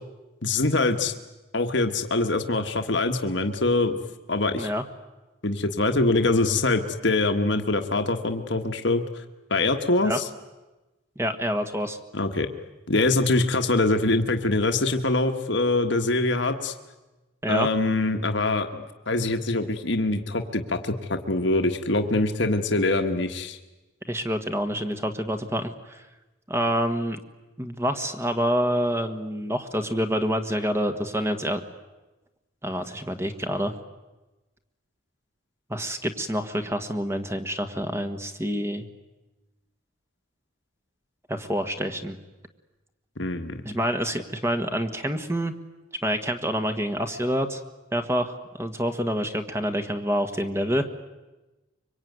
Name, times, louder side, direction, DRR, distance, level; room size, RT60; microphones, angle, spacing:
voice 1, 0.4-1.1 1.5-4.0 4.3-4.7 5.4-9.0 9.5-10.3 12.1-12.5 12.9-16.7 17.5-23.6 43.2-43.6, left 2 dB, 60° left, 6 dB, 1.5 m, -24 dB
voice 2, 11.2-12.0 17.4-17.7 24.1-26.0 26.5-27.2 27.6-31.6 32.6-33.7 35.7-38.8 41.3-42.2 43.6-45.5 46.0-47.6 47.9-50.9, equal, 15° right, 7 dB, 1.5 m, -27 dB
25.0 x 24.0 x 9.5 m, 1.1 s
head